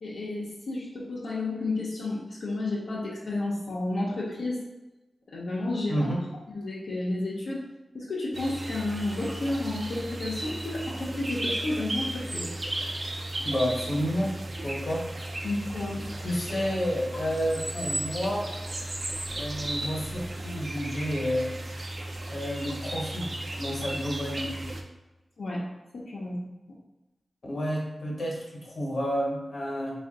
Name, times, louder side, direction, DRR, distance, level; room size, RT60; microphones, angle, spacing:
voice 1, 0.0-4.6 5.3-5.9 6.5-7.7 7.9-12.5 15.4-16.0 25.4-25.6 25.9-26.4, left 2 dB, 85° left, -7 dB, 0.8 m, -31 dB
sound 1, 8.3-24.8, right 1 dB, 40° right, 0.4 m, -35 dB
voice 2, 13.4-14.3 14.6-15.0 16.2-18.5 19.3-21.5 22.3-24.7 27.5-30.0, equal, 55° left, -2 dB, 1.1 m, -30 dB
3.5 x 2.5 x 3.7 m, 1.0 s
wide cardioid pair, 105°, 0 cm